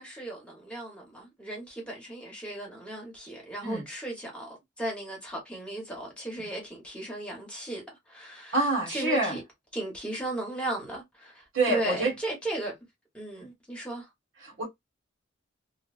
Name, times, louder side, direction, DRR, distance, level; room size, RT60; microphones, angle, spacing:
voice 1, 0.0-9.4 9.7-12.7 13.1-14.1, right 1 dB, 5° left, 1.1 m, -36 dB
voice 2, 8.5-9.4 11.5-12.1 14.4-14.6, right 2 dB, 80° right, 1.4 m, -26 dB
2.6 x 2.3 x 2.4 m
head